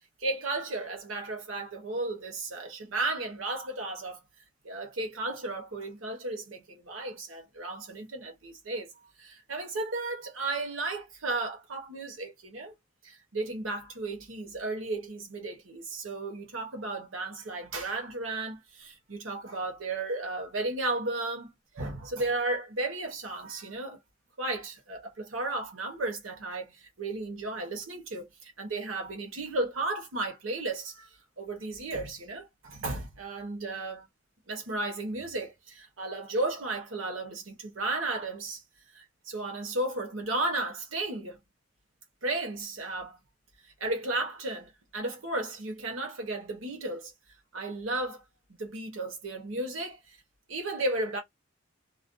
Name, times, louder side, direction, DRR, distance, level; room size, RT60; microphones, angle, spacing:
voice 1, 0.2-4.2 4.6-8.9 9.2-12.7 13.0-24.0 24.4-34.1 34.5-38.6 38.9-41.4 42.2-43.2 43.8-47.1 47.5-48.2 48.5-50.2 50.5-51.2, right 2 dB, 85° right, 1.0 m, -34 dB
2.5 x 2.2 x 2.5 m
head